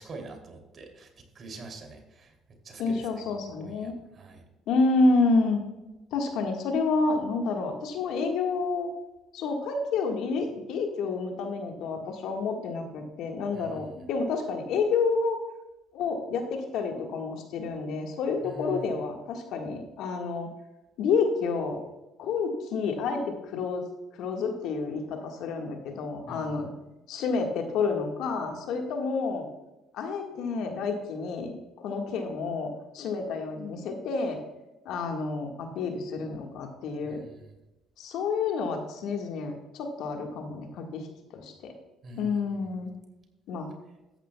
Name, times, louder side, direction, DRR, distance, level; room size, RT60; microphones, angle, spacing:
voice 1, 0.0-2.3 2.6-4.4 13.5-14.0 18.4-19.0 26.3-26.6 37.0-37.6 42.0-42.6, right 2 dB, 50° right, 3 dB, 2.9 m, -45 dB
voice 2, 2.8-3.9 4.7-5.6 6.1-8.9 9.3-15.4 15.9-20.5 21.0-21.8 22.2-23.8 24.2-26.7 27.1-29.5 29.9-34.4 34.8-37.2 38.0-41.1 41.3-41.7 42.2-42.9 43.5-43.7, left 4 dB, 70° left, 3 dB, 1.6 m, -29 dB
13.5 x 9.9 x 2.3 m, 0.99 s
hypercardioid pair, 60°, 0 cm